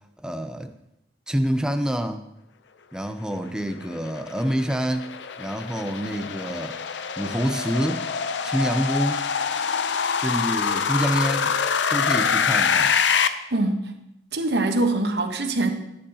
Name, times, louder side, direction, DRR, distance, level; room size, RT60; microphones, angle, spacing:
voice 1, 0.2-0.7 1.3-2.2 2.9-6.8 7.2-8.1 8.4-9.3 10.2-11.6 11.9-13.0, equal, 5° right, 7 dB, 0.5 m, -27 dB
sound 1, 3.7-13.3, left 6 dB, 85° left, 0.6 m, -25 dB
voice 2, 13.5-13.9 14.3-15.7, right 2 dB, 65° right, 6 dB, 1.1 m, -23 dB
14.0 x 10.0 x 2.8 m, 0.82 s
head